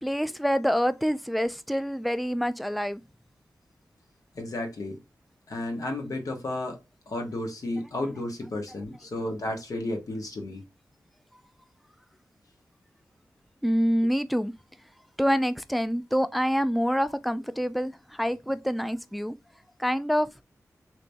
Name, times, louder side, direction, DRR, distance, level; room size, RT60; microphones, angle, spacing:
voice 1, 0.0-3.0 13.6-14.5 15.2-19.4 19.8-20.3, equal, ahead, 0.3 m, -26 dB
voice 2, 4.3-5.0 5.5-6.8 7.1-10.6, left 1 dB, 70° left, 1.1 m, -32 dB
3.3 x 2.9 x 2.6 m
cardioid pair, 60°, 6 cm